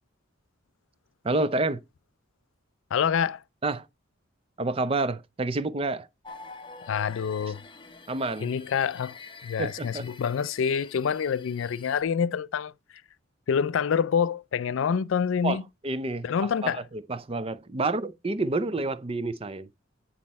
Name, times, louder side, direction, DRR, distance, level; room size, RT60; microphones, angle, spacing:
voice 1, 1.2-1.8 3.6-3.9 4.6-6.1 8.1-8.5 9.6-10.0 15.4-19.7, right 2 dB, 25° right, 0.5 m, -29 dB
voice 2, 2.9-3.4 6.8-7.6 8.4-9.2 9.4-12.7 13.5-15.6 16.2-16.8, left 7 dB, 70° left, 0.3 m, -26 dB
sound 1, 6.2-12.0, left 4 dB, 25° left, 0.7 m, -47 dB
9.5 x 4.3 x 4.1 m
head